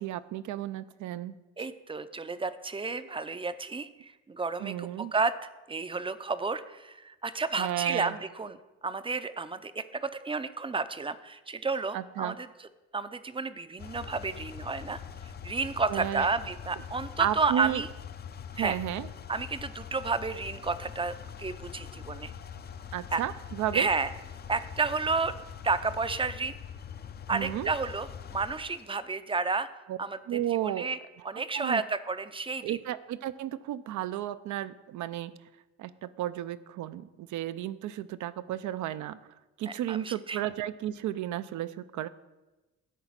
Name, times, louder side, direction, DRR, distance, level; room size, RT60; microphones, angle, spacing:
voice 1, 0.0-1.4 4.6-5.1 7.6-8.2 11.9-12.4 15.9-16.3 17.2-17.8 18.5-19.1 22.9-23.9 27.3-27.7 29.9-30.0 30.3-30.9 31.5-31.8 32.6-35.3 35.8-39.2 39.6-42.1, right 12 dB, 75° right, 13 dB, 0.5 m, -33 dB
voice 2, 1.6-5.3 5.7-8.6 8.8-12.7 12.9-17.9 18.6-18.8 19.3-22.3 23.1-23.2 23.7-24.1 24.5-25.3 25.6-26.5 27.3-29.7 30.0-30.2 30.6-31.0 31.2-32.8 39.7-40.4, right 4 dB, 20° right, 13 dB, 0.4 m, -31 dB
sound 1, 13.8-28.9, left 8 dB, 35° left, 0.5 m, -43 dB
10.0 x 3.9 x 7.3 m, 1.1 s
cardioid pair, 90°, 30 cm